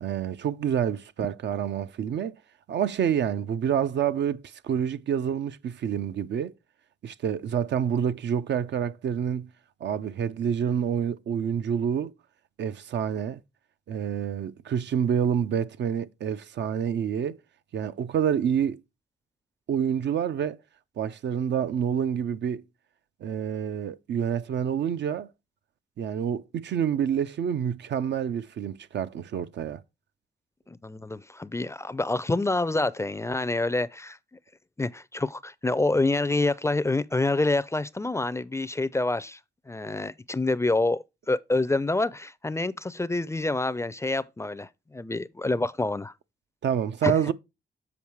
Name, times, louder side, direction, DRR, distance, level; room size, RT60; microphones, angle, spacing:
voice 1, 0.0-2.4 2.7-6.5 7.0-9.5 9.8-12.1 12.6-13.4 13.9-17.4 17.7-18.8 19.7-20.6 21.0-22.6 23.2-25.3 26.0-29.8 46.6-47.3, right 8 dB, 75° right, 0.5 m, -27 dB
voice 2, 30.7-34.2 34.8-39.4 39.7-46.1 47.0-47.1, left 2 dB, 15° left, 0.4 m, -27 dB
7.2 x 4.6 x 4.6 m
cardioid pair, 75°, 18 cm